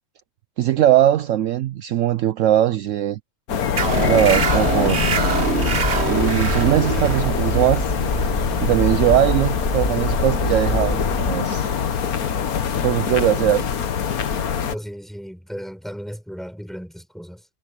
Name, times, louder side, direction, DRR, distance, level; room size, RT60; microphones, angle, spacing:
voice 1, 0.6-3.2 4.0-5.1 5.7-5.8 6.1-7.9 8.6-11.7 12.8-13.7, right 12 dB, 70° right, 0.9 m, -20 dB
sound 1, 3.5-14.7, left 7 dB, 80° left, 1.7 m, -24 dB
Bird, 3.8-11.4, left 2 dB, 25° left, 1.7 m, -26 dB
sound 2, 3.8-10.9, right 6 dB, 50° right, 1.5 m, -25 dB
voice 2, 14.7-17.5, equal, ahead, 6.1 m, -36 dB
omnidirectional pair, 1.5 m